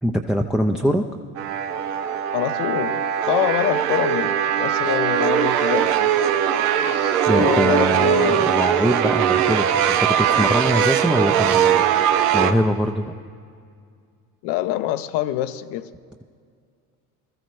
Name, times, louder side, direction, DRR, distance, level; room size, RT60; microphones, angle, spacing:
voice 1, 0.0-1.0 7.3-13.2, equal, ahead, 2 dB, 0.5 m, -23 dB
sound 1, 1.4-12.5, right 9 dB, 80° right, 0.8 m, -20 dB
voice 2, 2.3-6.1 7.3-8.6 14.4-15.9, left 13 dB, 65° left, 12 dB, 0.7 m, -25 dB
21.0 x 13.5 x 3.2 m, 2.2 s
hypercardioid pair, 75°, 45 cm